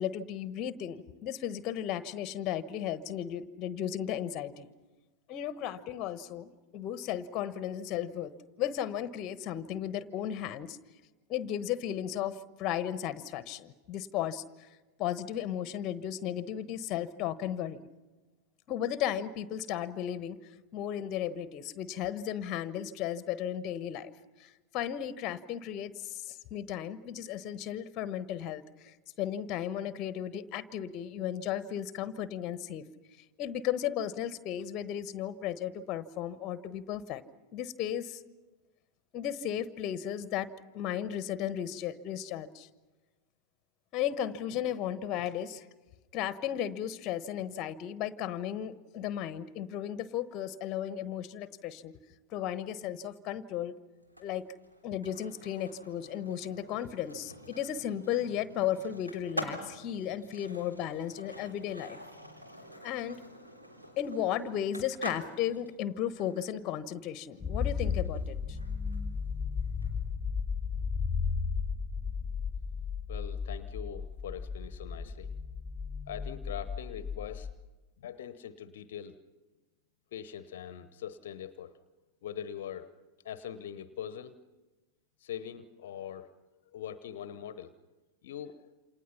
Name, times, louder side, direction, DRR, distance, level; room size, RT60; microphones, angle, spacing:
voice 1, 0.0-4.7 5.3-10.8 11.3-14.7 15.0-17.8 18.7-20.4 20.7-24.1 24.4-32.9 33.4-37.2 37.5-38.2 39.1-42.7 43.9-45.7 46.1-51.9 52.3-53.7 54.2-54.5 54.8-62.0 62.8-63.2 64.0-68.6, left 10 dB, 35° left, 14 dB, 1.1 m, -35 dB
Skateboard, 54.0-69.9, equal, 85° right, 3.5 m, -46 dB
sound 1, 67.4-77.5, left 5 dB, 5° left, 1.7 m, -34 dB
voice 2, 73.1-75.3 76.1-77.5 78.0-79.2 80.1-81.8 82.2-82.9 83.2-84.4 85.2-86.3 86.7-87.7 88.2-88.7, left 9 dB, 55° left, 14 dB, 0.9 m, -42 dB
28.5 x 27.5 x 5.8 m, 1.2 s
figure-of-eight pair, 90°, 0 cm